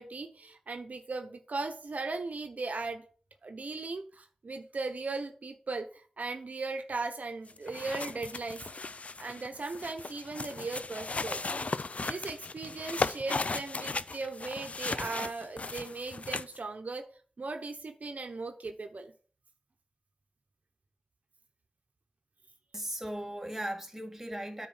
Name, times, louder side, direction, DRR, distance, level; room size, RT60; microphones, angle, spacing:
voice 1, 0.0-3.1 3.4-8.9 9.2-11.4 12.1-17.1 17.4-19.1, right 3 dB, 70° right, 1.0 m, -38 dB
sound 1, 7.5-16.6, left 3 dB, 55° left, 0.5 m, -36 dB
voice 2, 22.7-24.7, right 1 dB, 10° right, 2.0 m, -37 dB
9.3 x 4.6 x 7.2 m
wide cardioid pair, 65°, 3 cm